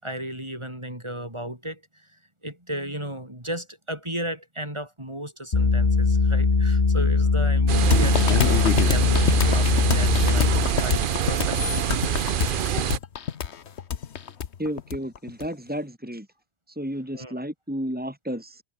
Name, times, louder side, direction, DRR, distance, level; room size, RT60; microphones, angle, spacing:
voice 1, 0.0-11.8 17.1-17.3, right 1 dB, 25° right, 4.7 m, -35 dB
sound 1, 5.5-10.8, left 3 dB, 40° left, 1.7 m, -21 dB
sound 2, 7.7-13.0, right 9 dB, 55° right, 0.8 m, -26 dB
sound 3, 7.9-15.5, left 8 dB, 85° left, 1.3 m, -25 dB
voice 2, 14.6-16.3 16.7-18.6, equal, 10° right, 3.8 m, -32 dB
omnidirectional pair, 1.1 m